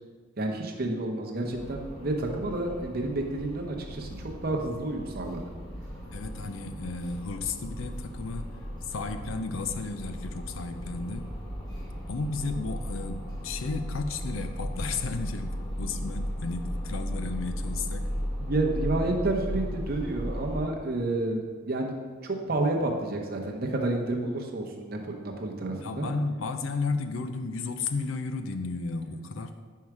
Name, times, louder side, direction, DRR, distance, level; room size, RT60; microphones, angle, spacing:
voice 1, 0.4-4.1 4.4-5.4 18.4-22.0 22.2-26.1, right 2 dB, 50° right, 1 dB, 0.8 m, -30 dB
sound 1, 1.4-20.6, equal, 25° left, 1.4 m, -36 dB
voice 2, 6.1-8.5 8.9-11.3 12.1-18.0 25.7-29.5, left 3 dB, 80° left, 8 dB, 0.5 m, -33 dB
5.5 x 4.6 x 4.8 m, 1.5 s
head